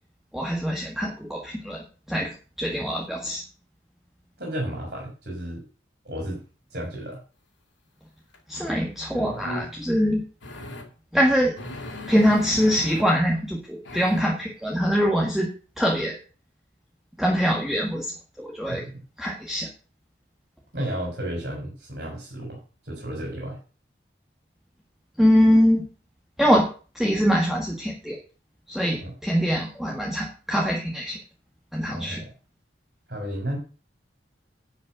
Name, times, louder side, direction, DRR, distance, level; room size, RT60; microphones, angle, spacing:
voice 1, 0.3-3.4 8.5-10.2 11.1-11.5 12.1-15.5 15.8-16.2 17.2-18.1 18.4-18.8 19.2-19.7 25.2-25.9 26.4-26.7 27.0-28.2 28.7-31.2 31.7-32.2, equal, ahead, -2 dB, 1.6 m, -23 dB
voice 2, 4.4-5.6 6.0-6.4 6.7-7.2 18.7-18.9 20.7-23.6 29.0-29.1 31.9-32.3 33.1-33.6, right 1 dB, 55° right, -1 dB, 4.3 m, -33 dB
sound 1, 8.3-8.4 9.1-9.7 10.4-10.9 11.6-13.0 13.8-14.2, left 1 dB, 85° left, 2.8 m, -37 dB
11.0 x 5.2 x 7.8 m, 0.38 s
head